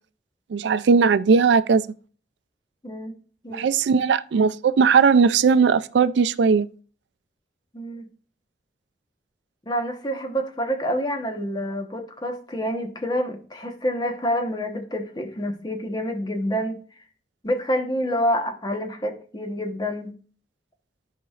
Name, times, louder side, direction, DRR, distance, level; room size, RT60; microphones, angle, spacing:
voice 1, 0.5-1.8 3.5-6.7, right 5 dB, 75° right, 0.4 m, -18 dB
voice 2, 2.8-3.1 3.4-3.6 7.7-8.1 9.7-16.8 17.4-20.1, equal, 25° left, 1.1 m, -27 dB
13.5 x 5.0 x 2.5 m
head